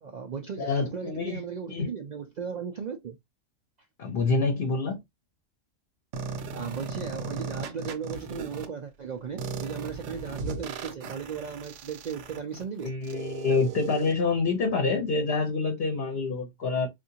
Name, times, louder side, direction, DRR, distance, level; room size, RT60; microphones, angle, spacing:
voice 1, 0.0-3.2 6.5-12.9, right 6 dB, 85° right, 0.3 m, -36 dB
voice 2, 0.6-1.4 1.7-1.9 4.0-5.0 12.8-16.9, left 4 dB, 55° left, 0.9 m, -27 dB
sound 1, 6.1-8.7 9.4-14.1, right 4 dB, 70° right, 0.9 m, -37 dB
3.5 x 2.6 x 2.7 m
omnidirectional pair, 1.3 m